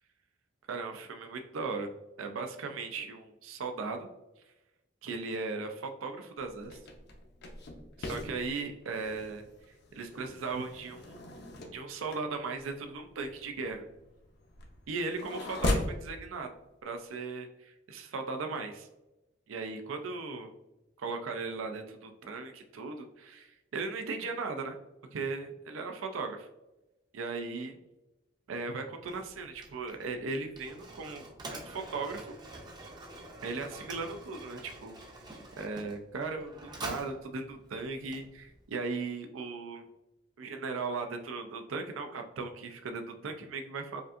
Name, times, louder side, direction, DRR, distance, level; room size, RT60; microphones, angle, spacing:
voice 1, 0.7-1.9 2.2-4.1 5.0-6.8 8.0-9.5 9.9-11.2 11.7-13.8 14.9-16.5 16.8-18.9 19.5-20.5 21.0-24.8 25.1-26.5 27.1-27.8 28.5-31.2 31.5-32.3 33.4-35.0 35.6-39.8 40.4-44.0, right 4 dB, 85° right, 5 dB, 0.4 m, -37 dB
sound 1, 6.4-16.0, left 1 dB, 55° left, 0.6 m, -38 dB
Mechanisms, 29.0-38.7, right 2 dB, 20° right, 0.5 m, -47 dB
5.0 x 2.5 x 2.4 m, 0.98 s
head